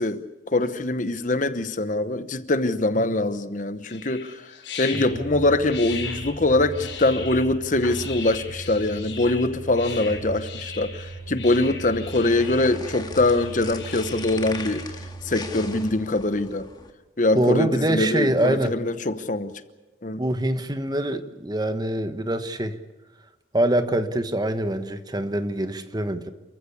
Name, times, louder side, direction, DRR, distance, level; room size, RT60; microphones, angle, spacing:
voice 1, 0.0-4.4 4.8-14.8 15.2-16.7 17.2-19.6 20.0-20.2, left 2 dB, 45° left, 1.0 m, -23 dB
sound 1, 3.8-14.8, left 6 dB, 80° left, 6.4 m, -39 dB
sound 2, 5.1-15.9, right 3 dB, 40° right, 7.7 m, -38 dB
sound 3, 11.9-16.9, left 3 dB, 25° left, 1.7 m, -40 dB
voice 2, 17.3-18.7 20.2-22.8 23.5-26.3, right 1 dB, 20° right, 1.2 m, -24 dB
28.5 x 15.0 x 8.5 m
head